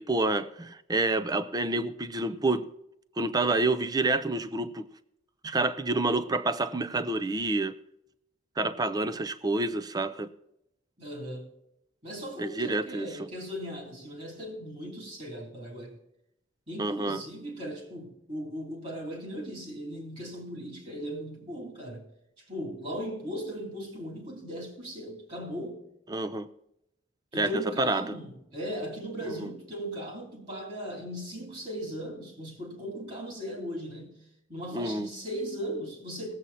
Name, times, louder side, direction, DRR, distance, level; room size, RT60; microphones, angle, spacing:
voice 1, 0.0-2.7 3.2-4.9 5.4-7.7 8.6-10.3 12.4-13.3 16.8-17.2 26.1-26.5 27.3-28.2 29.4-29.5 34.7-35.1, right 2 dB, 20° right, 0.5 m, -28 dB
voice 2, 11.0-11.4 12.0-16.0 16.7-22.1 22.5-25.8 27.3-34.2 34.5-36.3, equal, 40° right, 2.9 m, -38 dB
19.0 x 7.7 x 4.1 m
head